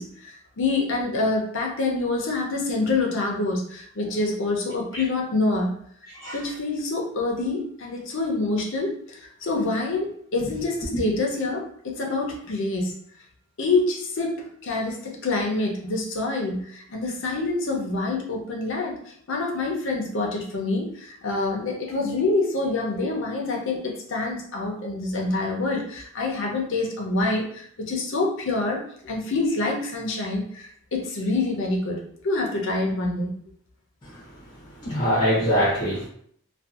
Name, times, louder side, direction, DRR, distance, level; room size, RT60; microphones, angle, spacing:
voice 1, 0.0-5.8 6.3-12.9 13.6-33.3, left 2 dB, 60° left, 0 dB, 0.6 m, -26 dB
voice 2, 34.8-36.1, equal, 20° left, -8 dB, 0.6 m, -22 dB
2.6 x 2.3 x 2.3 m, 0.64 s
head